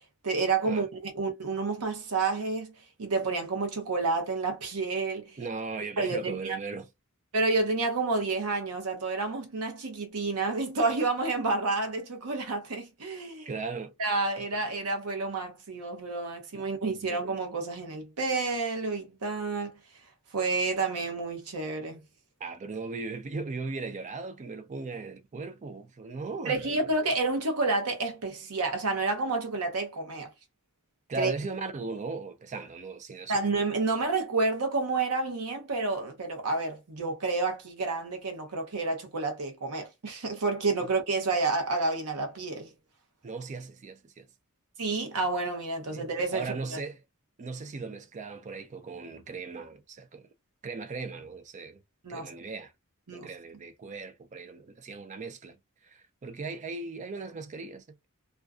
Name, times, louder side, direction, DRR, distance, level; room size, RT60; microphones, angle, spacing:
voice 1, 0.2-5.4 6.0-6.6 7.3-13.5 14.0-19.8 20.3-22.0 26.5-30.3 31.1-31.3 33.3-42.7 44.8-46.8 52.0-52.3 53.1-53.3, right 3 dB, 85° right, 0.8 m, -29 dB
voice 2, 5.4-6.9 13.5-13.9 16.5-17.1 22.4-26.6 31.1-33.4 43.2-44.3 45.9-47.0 47.4-50.3 50.6-51.8 52.1-52.7 53.1-55.6 55.8-57.8, right 4 dB, 35° right, 0.4 m, -38 dB
2.4 x 2.2 x 2.4 m
head